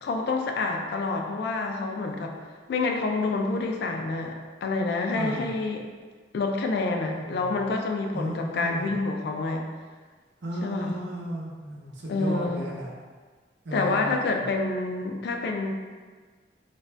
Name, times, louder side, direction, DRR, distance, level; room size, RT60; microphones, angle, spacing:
voice 1, 0.0-2.4 2.7-5.9 6.3-9.7 10.6-10.9 12.1-12.6 13.7-15.7, left 3 dB, 60° left, 3 dB, 0.3 m, -28 dB
voice 2, 5.2-5.5 7.1-7.7 8.1-9.0 10.4-12.9 13.6-14.5, right 1 dB, 70° right, -3 dB, 0.6 m, -35 dB
2.6 x 2.2 x 3.1 m, 1.5 s
head